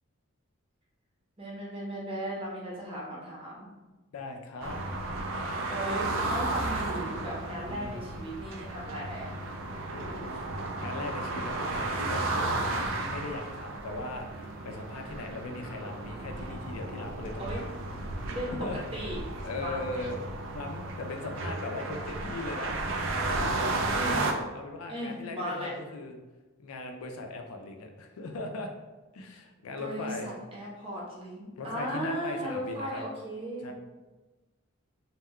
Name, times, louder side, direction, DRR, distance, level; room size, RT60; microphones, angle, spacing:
voice 1, 1.4-3.7 5.7-9.3 17.4-17.6 18.3-18.5 18.9-19.2 19.6-19.8 23.9-24.2 24.9-25.7 29.8-33.7, equal, 25° right, -5 dB, 0.7 m, -36 dB
voice 2, 4.1-4.8 7.7-8.0 9.9-10.5 10.8-17.7 18.5-18.8 19.4-22.7 23.1-24.0 24.3-26.2 26.6-28.7 29.1-30.3 31.6-33.0 33.6-33.7, left 2 dB, 85° left, 4 dB, 0.4 m, -39 dB
sound 1, 4.6-24.3, right 2 dB, 60° right, 0.3 m, -33 dB
2.2 x 2.1 x 3.5 m, 1.1 s
head